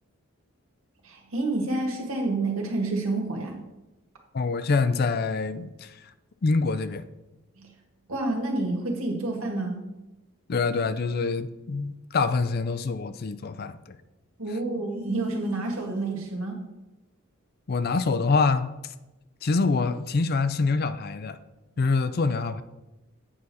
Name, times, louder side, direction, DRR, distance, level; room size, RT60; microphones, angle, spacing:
voice 1, 1.0-3.6 7.6-7.7 8.1-9.8 14.4-16.6, right 2 dB, 80° right, 1 dB, 1.8 m, -29 dB
voice 2, 4.3-6.1 6.4-7.1 10.5-14.0 17.7-18.9 19.4-21.4 21.8-22.6, left 4 dB, 45° left, 12 dB, 0.4 m, -25 dB
8.6 x 6.2 x 4.1 m, 1.0 s
head